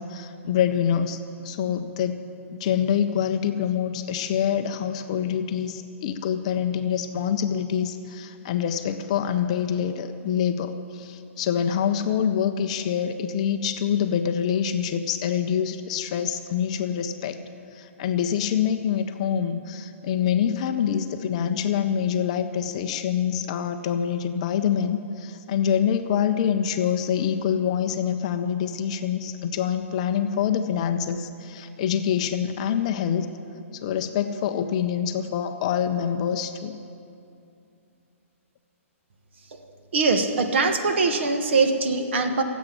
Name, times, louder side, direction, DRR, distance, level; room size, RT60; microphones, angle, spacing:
voice 1, 0.0-17.4 17.7-33.3 33.7-36.7, left 8 dB, 25° left, 8 dB, 0.5 m, -26 dB
voice 2, 39.9-42.4, right 4 dB, 55° right, 6 dB, 1.3 m, -22 dB
12.0 x 8.0 x 9.8 m, 2.6 s
hypercardioid pair, 170°, 8 cm